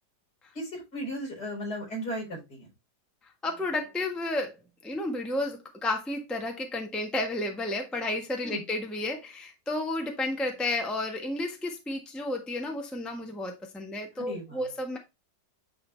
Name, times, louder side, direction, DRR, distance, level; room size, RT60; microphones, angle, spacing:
voice 1, 0.5-2.7 8.4-8.6 14.2-14.7, equal, 65° left, 6.1 m, -36 dB
voice 2, 3.4-4.6 4.8-15.0, left 2 dB, ahead, 1.2 m, -32 dB
10.5 x 4.0 x 3.4 m
omnidirectional pair, 1.9 m